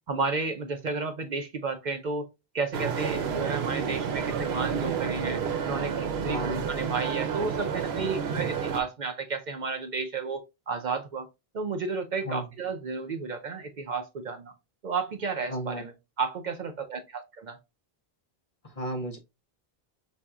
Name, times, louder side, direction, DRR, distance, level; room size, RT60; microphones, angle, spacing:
voice 1, 0.1-2.3 2.5-11.3 11.5-14.5 14.8-17.6, right 4 dB, 55° right, 0.6 m, -32 dB
sound 1, 2.7-8.8, right 7 dB, 90° right, 0.9 m, -30 dB
voice 2, 6.3-6.6 8.3-8.5 12.3-12.4 15.5-15.8 18.8-19.2, right 1 dB, 40° left, 0.7 m, -33 dB
5.4 x 2.5 x 2.2 m
omnidirectional pair, 1.0 m